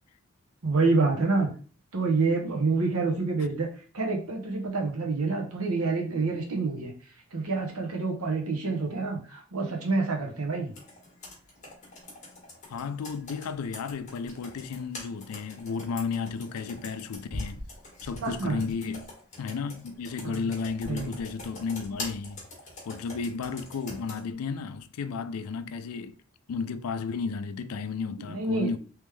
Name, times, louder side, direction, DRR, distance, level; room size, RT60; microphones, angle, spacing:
voice 1, 0.6-1.5 1.9-3.7 3.9-6.9 7.3-10.7 18.2-18.6 20.2-20.5 20.9-21.1 28.2-28.8, right 3 dB, 85° right, 1.0 m, -27 dB
Computer keyboard, 10.7-24.2, left 2 dB, 35° left, 1.3 m, -44 dB
voice 2, 12.7-17.6 18.0-19.1 19.4-22.4 22.9-26.2 26.5-28.8, left 5 dB, 90° left, 0.4 m, -33 dB
3.4 x 3.1 x 3.2 m
head